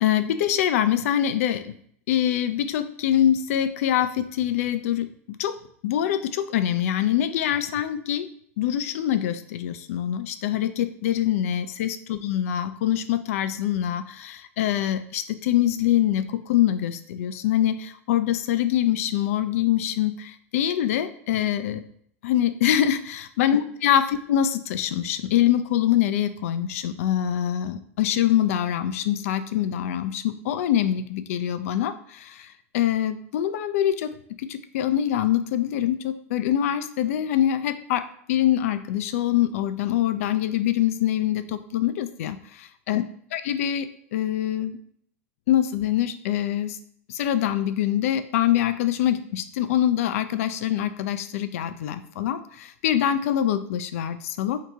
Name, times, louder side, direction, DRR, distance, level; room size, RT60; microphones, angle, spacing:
voice 1, 0.0-1.8 2.1-5.6 5.8-8.3 8.6-21.8 22.2-43.0 43.3-44.8 45.5-46.8 47.1-54.6, left 11 dB, 65° left, 11 dB, 0.3 m, -24 dB
2.8 x 2.8 x 3.5 m, 0.65 s
hypercardioid pair, 90°, 8 cm